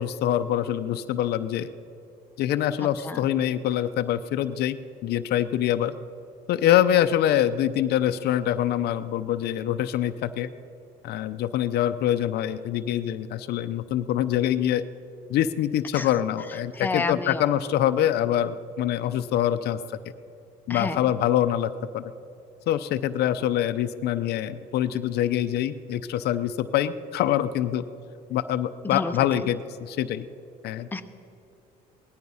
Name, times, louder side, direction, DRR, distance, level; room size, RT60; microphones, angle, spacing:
voice 1, 0.0-1.7 2.4-4.8 5.0-5.9 6.5-10.5 11.0-14.8 15.3-19.8 20.7-22.1 22.7-27.8 28.3-30.3 30.6-30.9, left 11 dB, 75° left, 11 dB, 0.6 m, -25 dB
voice 2, 16.7-17.4 20.7-21.0 28.9-29.1 30.9-31.0, left 3 dB, 10° left, 6 dB, 0.8 m, -29 dB
18.0 x 14.0 x 5.6 m, 2.7 s
cardioid pair, 110°, 17 cm